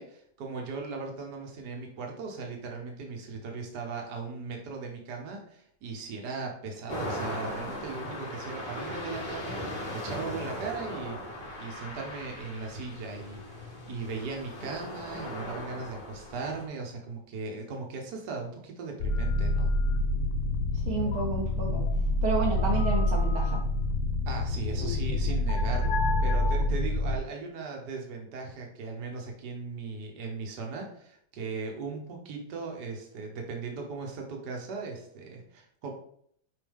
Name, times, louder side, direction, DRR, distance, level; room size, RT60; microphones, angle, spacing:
voice 1, 0.0-11.2 11.6-19.7 24.2-35.9, right 4 dB, 60° right, 1 dB, 1.1 m, -38 dB
sound 1, 6.9-16.6, left 1 dB, 55° left, 0.6 m, -38 dB
sound 2, 19.0-27.2, left 2 dB, 80° left, 1.9 m, -27 dB
voice 2, 20.9-21.8 22.2-23.6, right 4 dB, 80° right, -2 dB, 1.1 m, -30 dB
6.8 x 4.8 x 3.6 m, 0.67 s
omnidirectional pair, 3.6 m